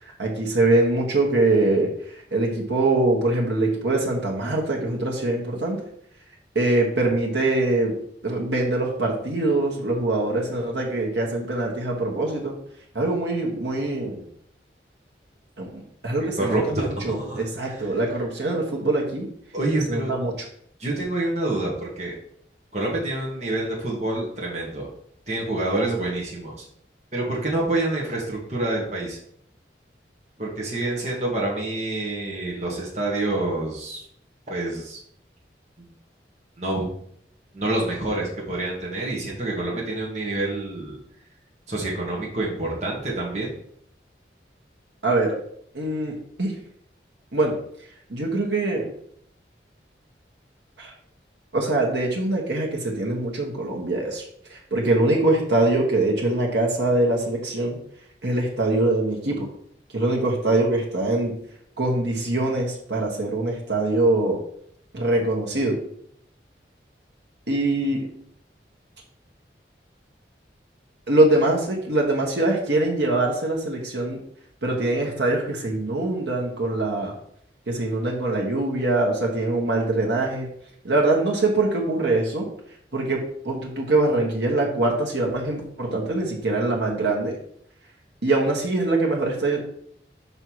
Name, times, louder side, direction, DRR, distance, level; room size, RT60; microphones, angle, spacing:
voice 1, 0.0-5.8 6.5-7.9 8.2-12.5 12.9-14.2 15.6-19.3 19.9-20.3 45.0-45.4 45.7-46.5 47.3-47.5 48.1-48.9 50.8-50.9 51.5-54.2 54.5-57.8 58.2-59.4 59.9-61.3 61.8-64.4 64.9-65.7 67.5-68.0 71.1-74.2 74.6-77.1 77.7-80.5 80.8-82.5 82.9-87.4 88.2-89.6, right 2 dB, 80° right, -2 dB, 1.4 m, -23 dB
voice 2, 16.4-17.9 19.5-20.1 20.8-22.1 22.7-24.9 25.3-26.6 27.1-29.2 30.4-34.0 34.5-35.0 36.6-36.9 37.5-41.0 41.7-43.5, right 2 dB, 40° right, -3 dB, 1.7 m, -27 dB
5.7 x 5.4 x 4.7 m, 0.67 s
head